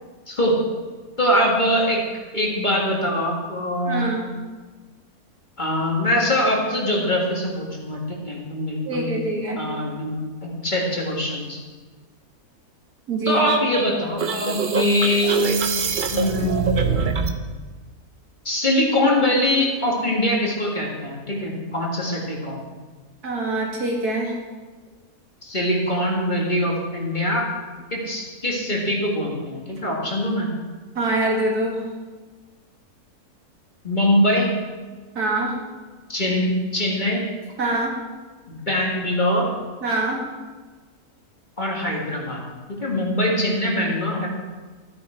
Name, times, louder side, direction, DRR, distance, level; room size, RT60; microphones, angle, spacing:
voice 1, 0.3-0.6 1.2-2.0 2.3-4.2 5.6-9.1 9.6-10.2 10.4-11.6 13.3-15.7 16.1-17.0 18.5-22.6 25.4-27.5 27.9-30.5 33.8-34.5 36.1-37.3 38.5-39.5 41.6-42.4 42.8-44.3, left 1 dB, 30° left, -2 dB, 1.9 m, -23 dB
voice 2, 3.9-4.3 8.9-9.6 13.1-13.4 23.2-24.3 31.0-31.8 35.2-35.5 37.6-37.9 39.8-40.2, right 2 dB, 75° right, -1 dB, 2.5 m, -24 dB
sound 1, 13.4-17.4, right 5 dB, 50° right, 0.6 m, -24 dB
13.0 x 9.3 x 4.3 m, 1.4 s
omnidirectional pair, 1.7 m